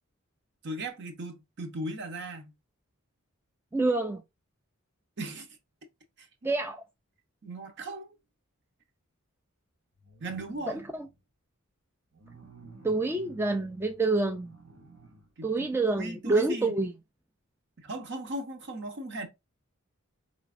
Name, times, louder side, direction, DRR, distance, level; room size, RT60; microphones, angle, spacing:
voice 1, 0.6-2.5 5.2-5.5 6.2-6.3 7.4-8.1 10.2-10.8 15.4-16.7 17.8-19.3, right 2 dB, 50° right, 0.9 m, -37 dB
voice 2, 3.7-4.2 6.4-6.8 10.7-11.1 12.8-14.5 15.4-16.9, right 3 dB, 10° right, 0.3 m, -27 dB
sound 1, 9.9-11.2 12.1-15.3 15.8-15.9, right 2 dB, 70° right, 1.6 m, -53 dB
5.1 x 3.2 x 2.4 m
head